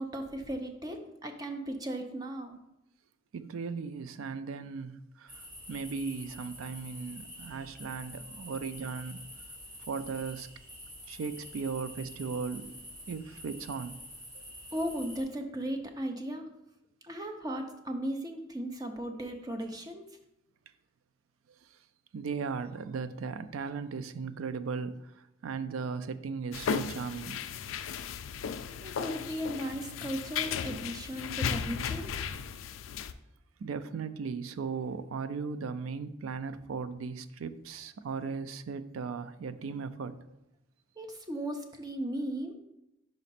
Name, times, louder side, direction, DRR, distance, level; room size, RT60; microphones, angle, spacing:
voice 1, 0.0-2.6 14.7-16.5 17.0-20.0 28.8-32.1 41.0-42.5, right 1 dB, 20° right, 0.5 m, -36 dB
voice 2, 3.3-9.3 9.9-10.5 11.1-12.8 13.1-14.0 14.3-14.4 22.1-27.4 33.6-40.4, right 5 dB, 85° right, 0.4 m, -37 dB
sound 1, 5.3-15.2, equal, 40° right, 2.1 m, -47 dB
quiet hall with plastic doors and russian voices, 26.5-33.1, left 7 dB, 80° left, 0.4 m, -35 dB
5.3 x 5.0 x 4.2 m
head